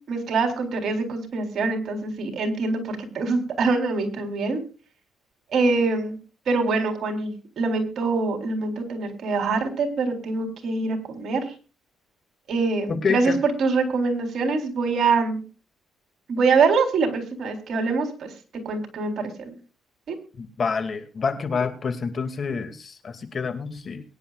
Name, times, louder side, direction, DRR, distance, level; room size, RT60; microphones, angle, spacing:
voice 1, 0.1-4.6 5.5-6.2 6.5-7.3 7.6-11.5 12.5-15.4 16.3-18.3 18.7-19.5 20.1-20.2, right 4 dB, 60° right, 3 dB, 3.9 m, -24 dB
voice 2, 12.9-13.4 20.4-24.0, left 5 dB, 45° left, 8 dB, 2.4 m, -27 dB
22.5 x 10.5 x 2.5 m, 0.35 s
cardioid pair, 90°, 0 cm